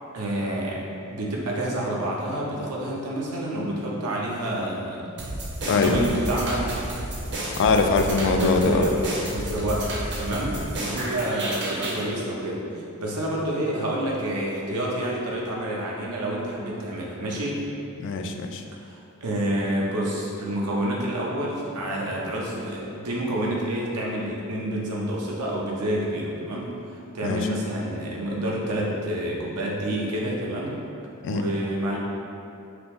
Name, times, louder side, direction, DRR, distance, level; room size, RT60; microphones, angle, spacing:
voice 1, 0.1-5.0 5.6-6.7 8.3-9.9 10.2-12.6 13.0-17.6 18.8-30.7 31.3-32.0, right 1 dB, 90° right, -3 dB, 0.8 m, -28 dB
sound 1, 5.2-12.0, right 1 dB, 55° right, 0.8 m, -31 dB
voice 2, 5.7-6.1 7.6-8.9 18.0-18.6 27.2-27.5 31.2-31.5, left 4 dB, 55° left, 5 dB, 0.3 m, -22 dB
5.8 x 2.0 x 3.5 m, 2.7 s
head